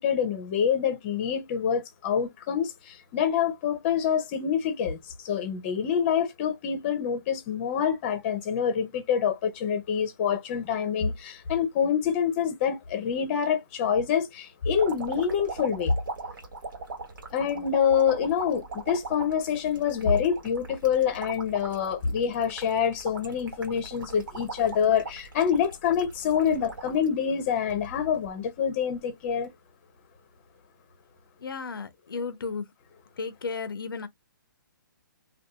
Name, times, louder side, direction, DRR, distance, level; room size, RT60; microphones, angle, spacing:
voice 1, 0.0-5.0 5.2-15.9 17.3-29.5, left 7 dB, 35° left, 0.7 m, -26 dB
sound 1, 14.7-27.1 27.6-28.3 29.3-29.5, right 3 dB, 70° right, 1.2 m, -40 dB
voice 2, 31.4-32.6 33.2-34.1, left 4 dB, 85° left, 0.5 m, -34 dB
2.7 x 2.3 x 2.2 m
hypercardioid pair, 150°, 11 cm